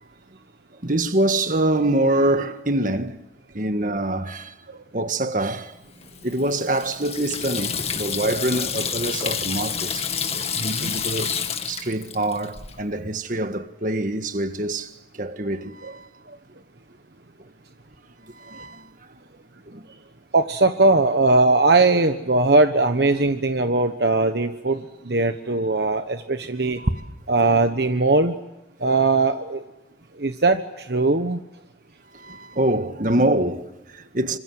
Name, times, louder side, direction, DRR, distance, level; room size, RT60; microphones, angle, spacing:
voice 1, 0.8-3.2 3.5-4.5 4.9-5.8 6.2-11.3 11.7-14.9 15.2-16.1 18.3-18.9 19.7-19.8 26.8-27.1 32.1-34.4, right 1 dB, 45° right, 1.7 m, -25 dB
Water tap faucet / Sink (filling or washing), 6.0-12.8, left 7 dB, 35° left, 2.1 m, -29 dB
voice 2, 10.6-10.9 15.8-15.9 16.3-16.4 20.3-26.8 27.3-28.4 28.8-29.6 30.2-31.4, right 3 dB, 65° right, 1.2 m, -20 dB
26.5 x 26.5 x 7.8 m
head